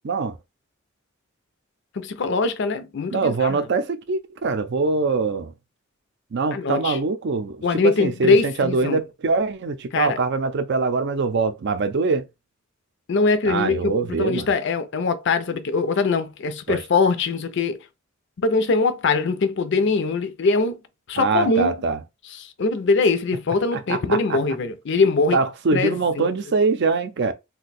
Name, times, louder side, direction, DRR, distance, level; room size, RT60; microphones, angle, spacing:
voice 1, 1.9-3.6 6.5-7.0 7.6-9.0 9.9-10.2 13.1-17.8 18.4-20.8 21.1-21.8 22.4-25.4 25.7-26.3, left 3 dB, 60° left, 0.5 m, -22 dB
voice 2, 3.1-5.5 6.3-12.3 13.5-14.5 16.7-16.8 21.2-22.0 23.7-24.4 25.3-27.3, right 4 dB, 60° right, 0.5 m, -23 dB
2.6 x 2.2 x 4.0 m
head